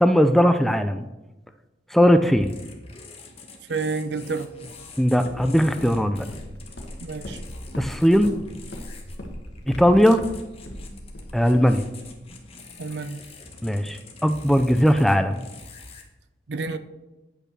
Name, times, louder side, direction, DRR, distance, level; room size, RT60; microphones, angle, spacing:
voice 1, 0.0-1.1 1.9-2.5 5.0-6.3 7.8-8.3 9.7-10.2 11.3-11.9 13.6-15.4, equal, ahead, 9 dB, 0.3 m, -19 dB
sound 1, 2.3-16.0, left 2 dB, 35° left, 1.2 m, -44 dB
voice 2, 3.7-4.5 7.0-7.4 12.8-13.2 16.5-16.8, right 4 dB, 70° right, 12 dB, 0.6 m, -29 dB
Walk footsteps, 4.6-12.5, left 1 dB, 70° left, 1.3 m, -40 dB
8.6 x 5.4 x 6.0 m, 1.1 s
head